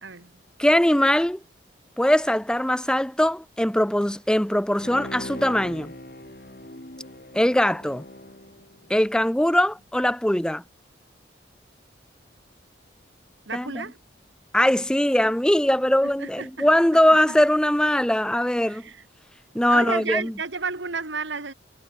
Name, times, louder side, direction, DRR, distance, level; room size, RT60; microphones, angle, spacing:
voice 1, 0.0-0.4 13.5-14.0 16.0-16.7 17.1-17.4 18.7-19.0 19.7-21.5, right 4 dB, 85° right, 2.6 m, -32 dB
voice 2, 0.6-1.4 2.0-5.9 7.3-8.0 8.9-10.6 13.5-13.8 14.5-18.8 19.5-20.3, left 1 dB, 5° left, 0.5 m, -21 dB
Bowed string instrument, 4.8-9.4 9.8-9.9, left 1 dB, 55° left, 3.0 m, -41 dB
head